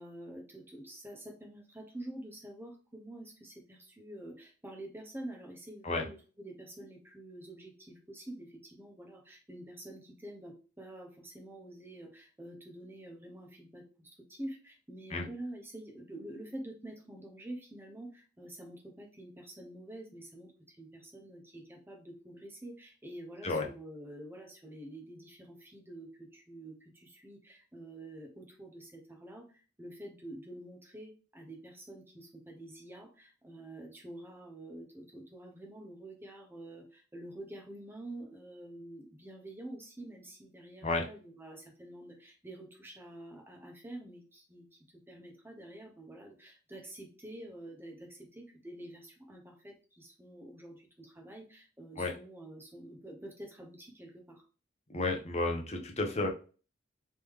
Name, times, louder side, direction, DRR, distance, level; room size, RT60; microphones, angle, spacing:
voice 1, 0.0-54.4, right 1 dB, 10° right, 2 dB, 0.9 m, -47 dB
voice 2, 54.9-56.3, left 2 dB, 35° left, 2 dB, 0.8 m, -31 dB
3.3 x 3.0 x 3.5 m, 0.36 s
head